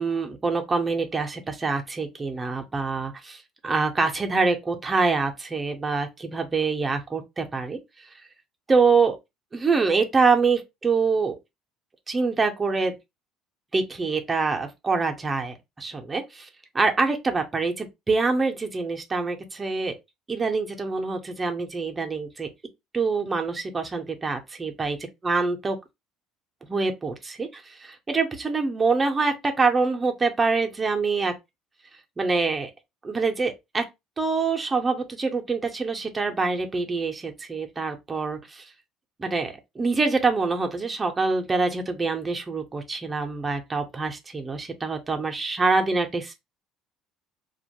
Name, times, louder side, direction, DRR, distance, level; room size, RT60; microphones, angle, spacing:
voice 1, 0.0-7.8 8.7-9.2 9.5-11.3 12.1-12.9 13.7-16.5 16.7-20.0 20.3-22.5 22.9-25.0 25.2-25.7 26.7-31.3 32.2-32.7 33.0-33.8 34.2-38.6 39.2-46.3, right 4 dB, 20° right, 0.5 m, -25 dB
2.4 x 2.2 x 2.8 m
cardioid pair, 110°, 0 cm